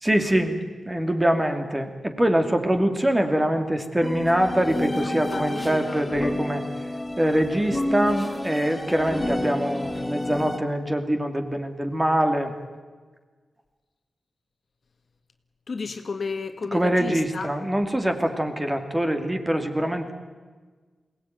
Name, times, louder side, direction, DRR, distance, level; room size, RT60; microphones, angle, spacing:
voice 1, 0.0-6.6 7.2-12.5 16.7-20.1, right 1 dB, 15° right, 5 dB, 2.6 m, -24 dB
sound 1, 4.0-10.6, left 1 dB, 15° left, 1.5 m, -30 dB
voice 2, 5.0-6.3 15.7-17.5, left 4 dB, 60° left, 7 dB, 1.7 m, -33 dB
22.0 x 18.0 x 9.4 m, 1.4 s
cardioid pair, 80°, 0 cm